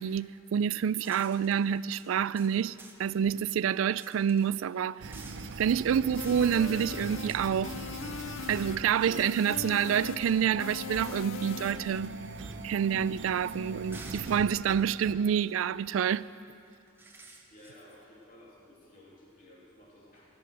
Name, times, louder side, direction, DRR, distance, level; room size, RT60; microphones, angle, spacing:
voice 1, 0.0-5.1 5.6-7.7 8.5-12.1 12.6-16.3, right 8 dB, 85° right, 0.3 m, -28 dB
sound 1, 1.0-3.2 4.0-4.5 5.1-5.5 6.2-6.8 7.3-7.4 8.2-8.3 10.1-10.5 11.0-11.2 13.7-14.9 16.7-18.0, right 3 dB, 10° right, 1.2 m, -52 dB
sound 2, 5.0-15.1, right 3 dB, 65° right, 0.7 m, -41 dB
sound 3, 6.2-12.0, left 8 dB, 80° left, 0.4 m, -41 dB
voice 2, 17.5-20.3, left 1 dB, 45° left, 2.8 m, -55 dB
16.0 x 13.0 x 6.3 m
head